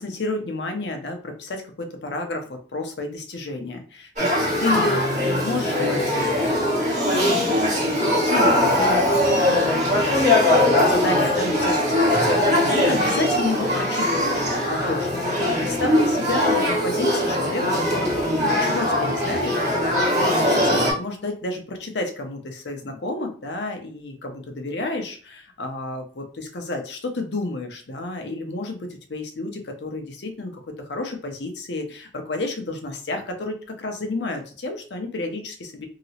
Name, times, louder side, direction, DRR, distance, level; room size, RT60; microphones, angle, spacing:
voice 1, 0.0-5.1 5.4-6.9 7.4-19.6 19.9-35.9, left 2 dB, 75° left, 4 dB, 0.7 m, -31 dB
Male speech man speaking / Child speech kid speaking / Conversation, 4.2-20.9, left 1 dB, 45° right, 1.5 m, -21 dB
2.9 x 2.9 x 2.8 m, 0.41 s
head